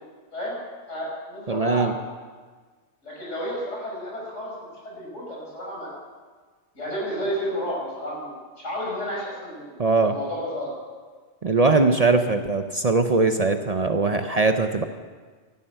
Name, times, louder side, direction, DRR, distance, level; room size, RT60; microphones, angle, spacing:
voice 1, 0.9-2.0 3.0-5.9 6.7-9.7 10.0-10.7, equal, 85° left, -3 dB, 6.0 m, -31 dB
voice 2, 1.5-1.9 9.8-10.1 11.4-14.8, right 3 dB, 40° right, 7 dB, 0.7 m, -21 dB
14.0 x 11.5 x 7.7 m, 1.5 s
omnidirectional pair, 1.2 m